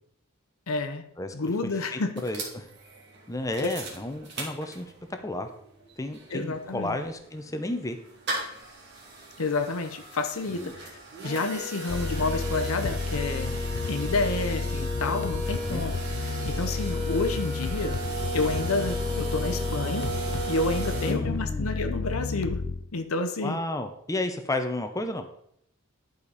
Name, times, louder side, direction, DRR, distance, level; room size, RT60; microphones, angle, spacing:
voice 1, 0.7-1.0 1.3-2.2 6.3-7.0 9.4-10.9 11.2-13.6 13.8-18.0 18.3-20.1 20.5-22.6 22.9-23.6, left 3 dB, 75° left, 7 dB, 0.8 m, -30 dB
voice 2, 1.9-2.6 3.3-4.9 5.2-5.5 6.0-8.0 10.5-10.7 15.5-15.8 21.1-21.7 23.4-25.3, left 1 dB, 15° left, 7 dB, 0.7 m, -32 dB
sound 1, 2.2-5.1 5.5-5.6 5.8-21.1, right 1 dB, 50° right, 2.1 m, -36 dB
sound 2, 11.9-22.9, left 4 dB, 55° left, 0.4 m, -31 dB
11.0 x 5.2 x 4.1 m, 0.73 s
head